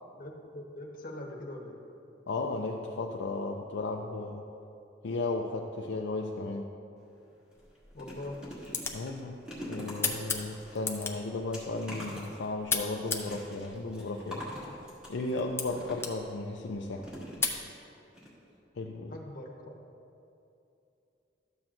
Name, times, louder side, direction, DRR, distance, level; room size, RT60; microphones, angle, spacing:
voice 1, 0.1-1.8 7.9-8.4 19.1-19.7, left 1 dB, 50° left, 0 dB, 1.0 m, -42 dB
voice 2, 2.3-4.4 5.0-6.7 8.9-14.8 15.1-17.1 18.8-19.1, left 2 dB, 70° left, 1 dB, 0.4 m, -35 dB
sound 1, 7.0-7.1 7.5-16.3 17.0-17.8 18.1-18.3 18.5-18.6, equal, 5° right, 1.7 m, -45 dB
sound 2, 7.6-17.6, left 4 dB, 15° left, 0.5 m, -38 dB
12.5 x 7.4 x 2.5 m, 2.7 s
head